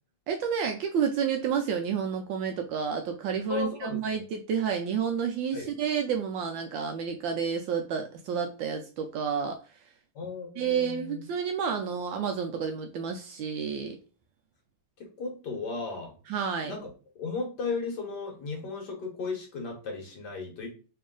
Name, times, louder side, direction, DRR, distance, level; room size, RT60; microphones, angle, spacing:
voice 1, 0.3-9.6 10.6-14.0 16.3-16.7, right 7 dB, 75° right, 4 dB, 1.1 m, -30 dB
voice 2, 3.5-4.2 5.5-5.7 10.1-11.2 15.0-16.1 16.6-16.8 17.1-20.7, left 4 dB, 55° left, 1 dB, 1.5 m, -35 dB
3.3 x 3.1 x 3.6 m, 0.36 s
omnidirectional pair, 2.4 m